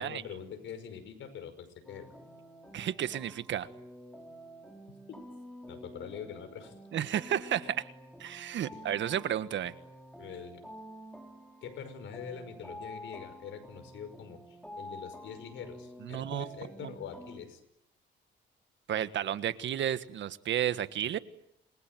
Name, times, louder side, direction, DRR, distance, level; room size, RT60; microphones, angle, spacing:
voice 1, 0.0-2.1 4.9-5.2 5.7-6.7 8.7-8.8 10.2-10.6 11.6-17.6, left 7 dB, 75° left, 8 dB, 5.8 m, -44 dB
sound 1, 1.8-17.4, equal, 5° left, 4.9 m, -49 dB
voice 2, 2.7-3.7 6.9-7.9 8.2-9.7 16.0-16.5 16.8-16.9 18.9-21.2, right 10 dB, 70° right, 12 dB, 1.5 m, -32 dB
28.0 x 22.0 x 9.4 m, 0.81 s
cardioid pair, 90°, 20 cm